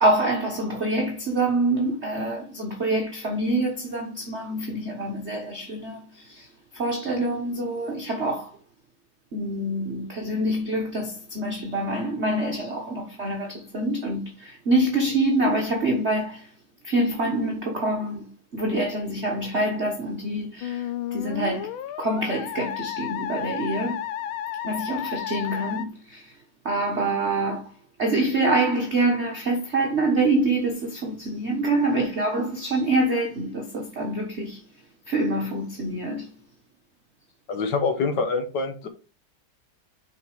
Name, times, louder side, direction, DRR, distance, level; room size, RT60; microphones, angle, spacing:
voice 1, 0.0-6.5 6.7-8.5 9.3-16.5 16.8-18.2 18.5-21.7 22.0-24.0 24.6-26.3 26.6-27.7 28.0-34.6 35.1-36.3, right 2 dB, 35° right, 1.3 m, -26 dB
Musical instrument, 20.6-25.8, left 11 dB, 80° left, 1.4 m, -32 dB
voice 2, 37.5-38.9, left 4 dB, 55° left, 1.8 m, -25 dB
6.8 x 4.8 x 4.9 m
omnidirectional pair, 2.3 m